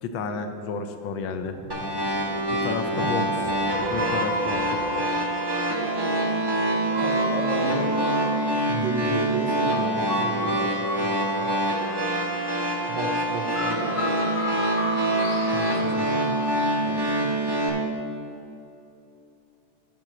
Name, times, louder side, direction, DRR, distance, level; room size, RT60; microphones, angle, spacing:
voice 1, 0.0-1.6 2.5-5.1 15.5-16.4, left 4 dB, 75° left, 6 dB, 1.3 m, -32 dB
sound 1, 1.3-6.6, left 1 dB, 35° left, 1.0 m, -43 dB
sound 2, 1.7-17.7, right 1 dB, 20° right, 0.6 m, -25 dB
voice 2, 2.9-3.3 6.9-8.0 8.7-10.7 11.0-11.5 12.9-14.0 16.1-16.2 16.8-17.3, right 3 dB, 65° right, 1 dB, 1.2 m, -33 dB
sound 3, 3.7-16.7, left 1 dB, 50° left, 1.4 m, -33 dB
7.7 x 5.0 x 7.4 m, 2.7 s
omnidirectional pair, 2.4 m